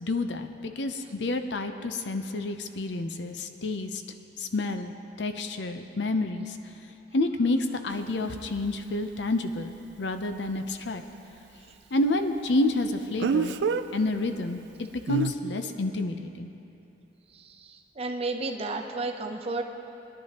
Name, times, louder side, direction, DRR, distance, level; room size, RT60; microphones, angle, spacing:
voice 1, 0.0-4.0 4.4-6.6 7.1-11.0 11.9-13.5 13.9-16.5, left 2 dB, 80° left, 7 dB, 0.7 m, -29 dB
Speech, 7.9-8.0 13.2-13.8 15.1-15.3, right 5 dB, 80° right, 0.4 m, -26 dB
voice 2, 17.3-19.6, right 3 dB, 35° right, 3 dB, 0.7 m, -32 dB
21.0 x 11.0 x 2.9 m, 2.9 s
head